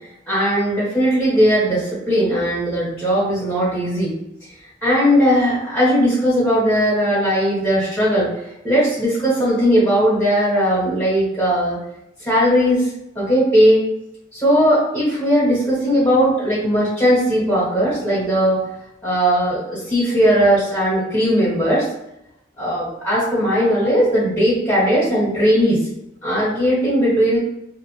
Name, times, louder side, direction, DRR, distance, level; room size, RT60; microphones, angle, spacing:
voice 1, 0.3-4.1 4.8-8.3 8.6-11.8 12.2-12.9 13.1-13.9 14.3-18.6 19.0-21.8 22.6-25.8 26.2-27.4, equal, 10° left, -10 dB, 1.4 m, -18 dB
2.8 x 2.4 x 2.8 m, 0.84 s
head